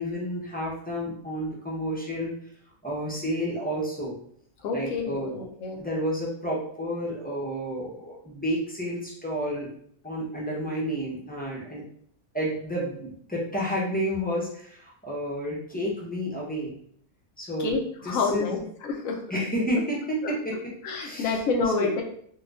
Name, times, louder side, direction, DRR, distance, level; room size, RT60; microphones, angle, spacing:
voice 1, 0.0-2.3 2.8-4.2 4.7-5.4 5.8-9.7 10.0-11.8 12.3-16.7 17.4-17.8 18.0-18.6 19.3-20.7 21.0-21.4 21.8-21.9, equal, 10° left, -5 dB, 0.6 m, -30 dB
voice 2, 4.6-5.8 17.6-18.6 18.8-19.2 20.2-20.3 20.8-22.0, left 4 dB, 80° left, 1 dB, 1.1 m, -28 dB
4.3 x 2.3 x 2.4 m, 0.65 s
omnidirectional pair, 1.5 m